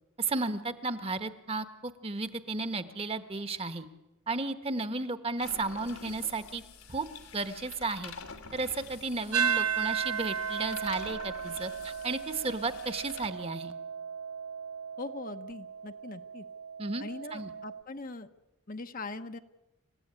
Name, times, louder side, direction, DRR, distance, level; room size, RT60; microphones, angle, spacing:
voice 1, 0.2-3.9 4.3-6.6 6.9-7.1 7.3-8.1 8.5-13.7 16.8-17.0 17.3-17.5, right 3 dB, 25° right, 10 dB, 1.2 m, -33 dB
sound 1, 5.4-13.3, left 5 dB, 85° left, 3.1 m, -48 dB
sound 2, 9.3-17.8, right 7 dB, 80° right, 1.4 m, -35 dB
voice 2, 15.0-16.4 17.0-18.3 18.7-19.4, left 3 dB, 40° left, 8 dB, 0.9 m, -41 dB
28.5 x 15.5 x 10.0 m, 1.0 s
head